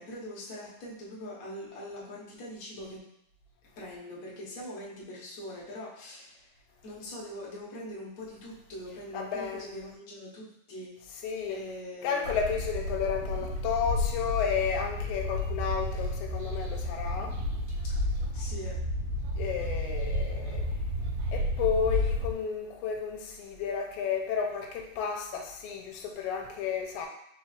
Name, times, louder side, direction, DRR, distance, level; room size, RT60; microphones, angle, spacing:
voice 1, 0.0-3.0 3.8-10.9 11.5-12.6 17.9-18.7, left 1 dB, 65° left, -5 dB, 0.8 m, -42 dB
voice 2, 9.1-9.6 11.2-11.6 12.0-17.4 19.4-20.7 21.3-27.1, left 7 dB, 85° left, 2 dB, 2.0 m, -32 dB
sound 1, 12.2-22.3, left 1 dB, 70° right, 1.6 m, -31 dB
4.6 x 4.3 x 2.4 m, 0.76 s
omnidirectional pair, 3.4 m